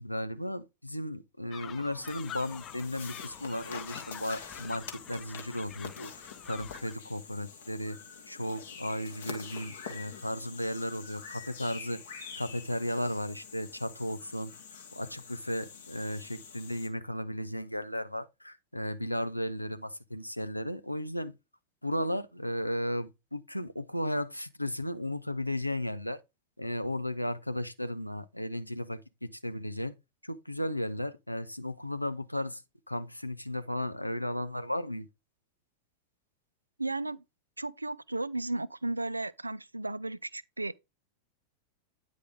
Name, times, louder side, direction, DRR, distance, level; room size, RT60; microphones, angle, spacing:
voice 1, 0.0-8.0 8.3-12.0 12.4-14.5 14.9-21.3 21.8-26.2 26.6-29.9 30.2-32.6 32.9-35.1, left 1 dB, 90° left, 0.5 m, -35 dB
sound 1, 1.5-6.9, left 10 dB, 30° left, 0.3 m, -46 dB
sound 2, 2.1-16.9, left 6 dB, 65° left, 1.6 m, -46 dB
voice 2, 36.8-37.2 37.6-40.8, right 2 dB, 85° right, 0.3 m, -34 dB
9.4 x 4.9 x 3.6 m
figure-of-eight pair, 90°, 0 cm